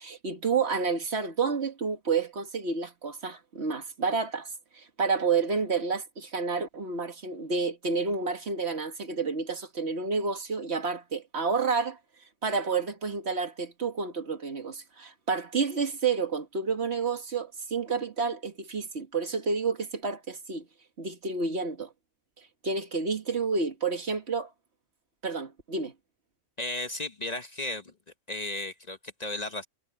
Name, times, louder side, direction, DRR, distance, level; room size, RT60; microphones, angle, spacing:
voice 1, 0.0-4.5 4.7-12.0 12.4-20.6 21.0-21.9 22.6-24.5 25.2-25.9, right 4 dB, 60° right, 1.9 m, -30 dB
voice 2, 26.6-27.9 28.3-29.7, left 2 dB, 35° left, 1.1 m, -34 dB
omnidirectional pair, 1.2 m